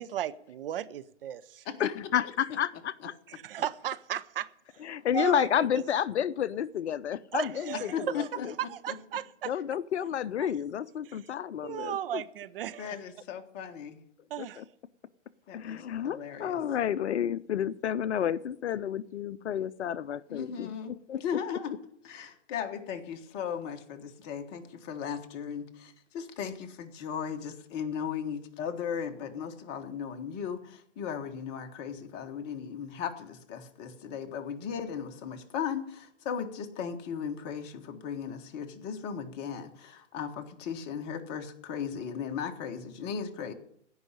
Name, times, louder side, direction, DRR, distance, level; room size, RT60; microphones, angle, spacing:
voice 1, 0.0-1.7 3.3-4.5 5.1-5.8 7.3-8.3 8.6-9.5 11.6-12.9 14.3-14.6, right 11 dB, 50° right, 0.7 m, -35 dB
voice 2, 1.8-3.2 4.8-8.5 9.5-12.2 14.4-14.6 15.5-20.7 21.1-21.2, left 9 dB, 65° left, 0.6 m, -31 dB
voice 3, 7.9-8.9 12.8-14.0 15.5-16.5 20.3-21.8 22.0-43.5, left 7 dB, 30° left, 1.5 m, -37 dB
16.5 x 5.6 x 10.0 m
hypercardioid pair, 125°, 36 cm